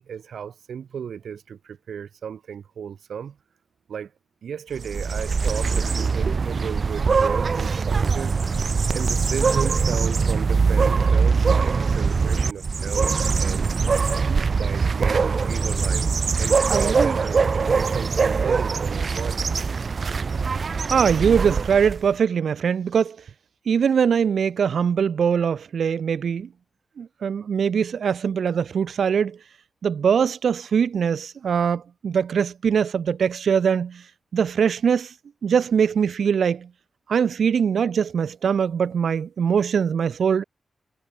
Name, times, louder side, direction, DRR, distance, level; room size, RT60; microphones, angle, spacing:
voice 1, 0.0-3.4 3.9-4.1 4.4-8.4 8.9-13.1 13.4-13.7 14.3-16.1 16.4-19.4, right 7 dB, 90° right, 1.1 m, -34 dB
sound 1, 4.8-22.1, right 5 dB, 45° right, 0.7 m, -22 dB
voice 2, 20.9-23.2 23.7-26.5 27.0-29.4 29.8-34.0 34.3-35.1 35.4-36.7 37.1-40.4, right 7 dB, 70° right, 0.4 m, -22 dB
wide cardioid pair, 155°, 0 cm